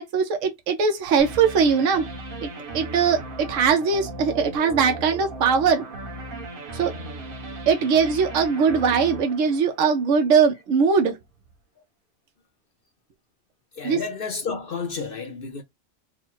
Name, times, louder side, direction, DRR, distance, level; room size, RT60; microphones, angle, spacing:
voice 1, 0.0-2.0 2.4-2.5 2.7-5.8 6.7-6.9 7.7-11.2 13.8-14.0, right 6 dB, 80° right, 1.1 m, -21 dB
sound 1, 1.2-10.2, right 2 dB, 45° right, 1.1 m, -37 dB
voice 2, 13.7-15.6, left 5 dB, 55° left, 0.7 m, -31 dB
3.7 x 2.1 x 4.4 m
omnidirectional pair, 1.3 m